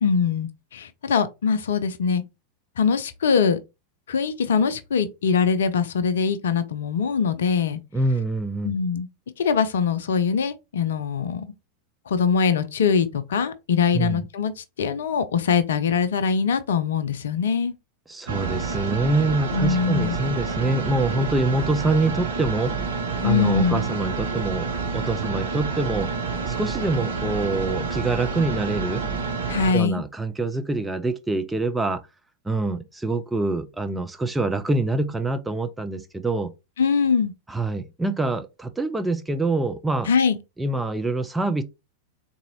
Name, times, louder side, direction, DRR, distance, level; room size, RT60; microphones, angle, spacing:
voice 1, 0.0-2.2 2.8-3.6 4.1-7.8 8.6-9.1 9.4-11.5 12.1-17.7 19.5-20.2 23.2-23.8 29.5-30.0 36.8-37.3 40.1-40.4, left 6 dB, 60° left, 0.4 m, -22 dB
voice 2, 7.9-8.7 13.9-14.2 18.1-22.8 23.2-26.1 26.5-29.1 29.7-32.0 32.4-36.5 37.5-40.1 40.6-41.6, right 2 dB, 10° right, 0.4 m, -25 dB
sound 1, 18.3-29.7, right 5 dB, 65° right, 0.7 m, -28 dB
3.9 x 2.7 x 2.7 m
figure-of-eight pair, 90°, 0 cm